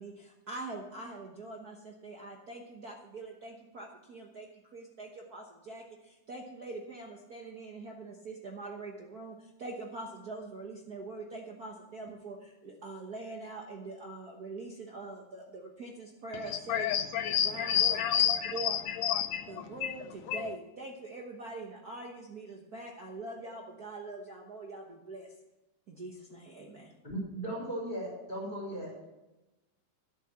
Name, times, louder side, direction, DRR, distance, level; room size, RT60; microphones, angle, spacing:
voice 1, 0.0-16.9 17.4-18.0 18.5-18.8 19.5-25.3 25.9-26.9, right 2 dB, 70° right, 0 dB, 0.8 m, -43 dB
voice 2, 16.5-19.9 20.3-20.5, left 10 dB, 80° left, 11 dB, 1.6 m, -30 dB
voice 3, 27.0-28.9, right 1 dB, 15° left, -3 dB, 5.0 m, -37 dB
11.5 x 8.5 x 6.9 m, 1.0 s
omnidirectional pair, 3.5 m